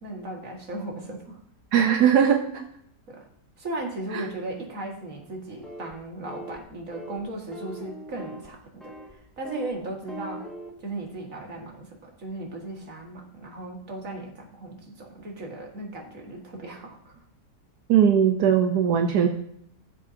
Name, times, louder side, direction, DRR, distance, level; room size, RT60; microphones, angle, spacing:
voice 1, 0.0-1.4 3.1-3.2 3.6-10.5 10.8-17.2, right 2 dB, 50° right, 0 dB, 2.3 m, -37 dB
voice 2, 1.7-2.6 4.1-4.2 17.9-19.3, right 8 dB, 70° right, 5 dB, 1.3 m, -20 dB
sound 1, 5.6-5.9 6.3-6.6 6.9-7.2 7.5-8.5 8.8-9.1 9.4-9.8 10.1-10.7, right 1 dB, ahead, 1.7 m, -40 dB
18.0 x 7.4 x 2.8 m, 0.70 s
omnidirectional pair, 1.8 m